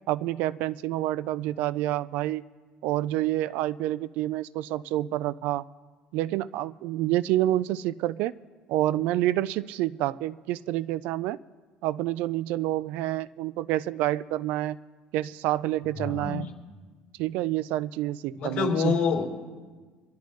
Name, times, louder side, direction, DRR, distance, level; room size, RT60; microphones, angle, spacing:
voice 1, 0.1-2.4 2.8-5.6 6.1-8.3 8.7-11.4 11.8-14.8 15.1-16.5 17.2-19.0, right 14 dB, 65° right, 18 dB, 0.3 m, -28 dB
voice 2, 16.0-16.4 18.4-19.2, left 5 dB, 50° left, -3 dB, 3.3 m, -26 dB
25.0 x 11.5 x 3.1 m, 1.4 s
cardioid pair, 160°, 3 cm